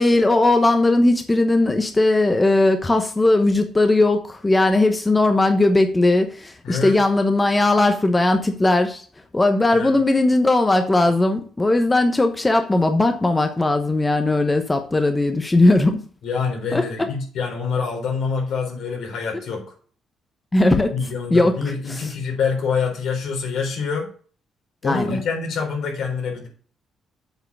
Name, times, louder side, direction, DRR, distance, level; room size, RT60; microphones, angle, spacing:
voice 1, 0.0-9.1 9.3-16.0 16.7-16.8 20.5-21.0 21.3-22.1 24.8-25.2, left 2 dB, 20° left, 6 dB, 0.9 m, -18 dB
voice 2, 6.6-7.0 9.7-9.9 16.2-19.6 20.9-24.1 24.8-26.5, left 5 dB, 75° left, 0 dB, 3.9 m, -26 dB
7.9 x 4.8 x 6.8 m, 0.43 s
cardioid pair, 90°, 0 cm